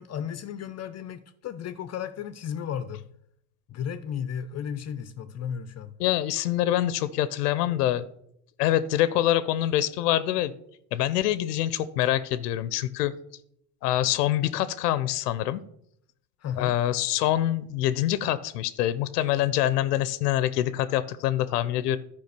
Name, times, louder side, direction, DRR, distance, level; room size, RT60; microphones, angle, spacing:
voice 1, 0.0-3.0 3.7-5.9 16.4-16.8, left 8 dB, 35° left, 0.7 m, -34 dB
voice 2, 6.0-8.0 8.6-10.5 10.9-13.1 13.8-15.6 16.6-22.0, left 13 dB, 90° left, 0.7 m, -25 dB
10.5 x 5.1 x 6.6 m
supercardioid pair, 100°, 46 cm